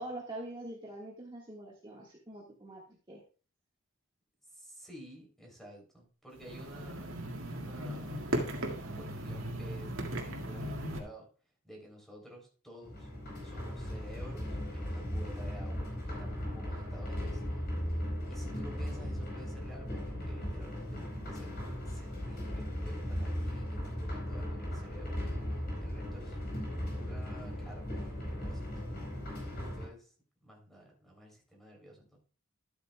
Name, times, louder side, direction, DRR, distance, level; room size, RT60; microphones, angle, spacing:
voice 1, 0.0-2.8 3.1-3.2, right 1 dB, 25° right, -4 dB, 1.6 m, -44 dB
voice 2, 4.5-7.1 7.5-8.5 8.9-11.3 11.6-13.1 13.4-17.5 18.3-21.5 21.8-25.3 25.8-26.4 26.9-30.1 30.4-32.2, equal, ahead, 0 dB, 3.3 m, -52 dB
sound 1, 6.4-11.0, right 1 dB, 90° right, 1.9 m, -37 dB
sound 2, 12.8-29.9, equal, 50° left, 4.2 m, -37 dB
12.5 x 8.4 x 2.2 m, 0.37 s
head